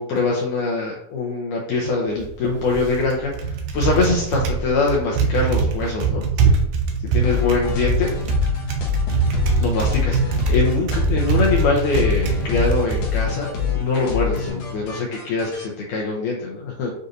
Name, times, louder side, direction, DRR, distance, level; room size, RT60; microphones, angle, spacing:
voice 1, 0.0-6.5 7.1-8.1 9.6-13.5 13.8-16.9, left 3 dB, 85° left, -3 dB, 1.8 m, -23 dB
Typing, 2.1-14.5, right 5 dB, 75° right, 2.0 m, -23 dB
sound 1, 7.2-15.6, left 9 dB, 70° left, 1.9 m, -26 dB
7.8 x 2.6 x 2.5 m, 0.76 s
omnidirectional pair, 4.3 m